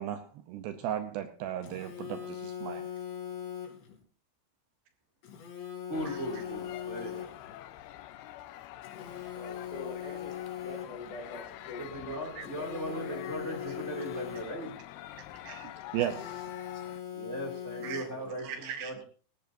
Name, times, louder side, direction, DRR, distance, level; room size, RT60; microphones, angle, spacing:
voice 1, 0.0-2.9 12.4-12.5 15.4-16.5 17.8-18.0 18.4-18.9, right 10 dB, 75° right, 9 dB, 2.6 m, -36 dB
Telephone, 1.6-4.0 5.2-7.6 8.8-11.2 12.4-14.8 16.0-18.4, left 10 dB, 65° left, 5.1 m, -41 dB
sound 1, 5.9-17.0, left 13 dB, 90° left, 3.3 m, -46 dB
voice 2, 5.9-7.3 11.8-14.8 16.7-16.8 17.1-19.0, right 1 dB, 25° right, 0 dB, 1.8 m, -38 dB
voice 3, 9.3-13.8, left 3 dB, 35° left, 2 dB, 2.8 m, -46 dB
19.0 x 15.5 x 2.7 m, 0.40 s
omnidirectional pair, 5.4 m